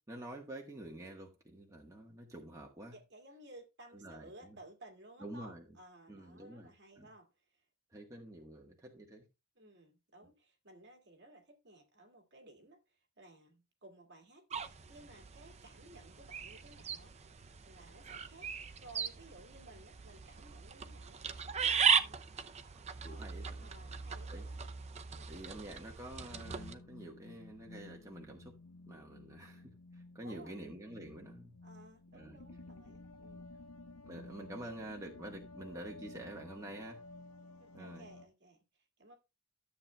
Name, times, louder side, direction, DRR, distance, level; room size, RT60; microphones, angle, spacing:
voice 1, 0.0-3.0 3.9-4.6 5.2-5.7 6.1-7.1 7.9-9.3 22.7-23.7 24.3-24.4 25.3-28.5 28.9-31.6 32.1-32.4 34.1-37.0 37.7-38.1, right 1 dB, 15° right, 1.3 m, -48 dB
voice 2, 2.9-7.7 9.6-18.5 18.8-22.2 23.0-23.3 23.6-24.7 25.1-25.3 30.2-30.6 31.6-33.5 37.6-39.2, right 1 dB, 50° right, 2.1 m, -57 dB
sound 1, 14.5-26.7, right 7 dB, 30° right, 0.5 m, -37 dB
sound 2, 26.2-38.3, left 2 dB, 70° left, 0.8 m, -53 dB
13.0 x 7.5 x 2.2 m
head